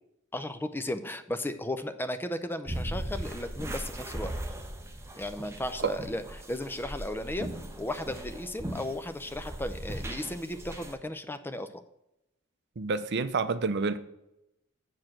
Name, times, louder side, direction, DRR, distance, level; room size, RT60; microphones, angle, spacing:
voice 1, 0.3-4.3 5.2-6.2 6.5-7.5 7.8-11.8, left 1 dB, 10° left, 0.5 m, -35 dB
sound 1, 2.6-10.9, right 1 dB, 15° right, 1.0 m, -38 dB
voice 2, 12.8-14.0, right 4 dB, 50° right, 0.6 m, -28 dB
7.7 x 4.8 x 7.2 m
head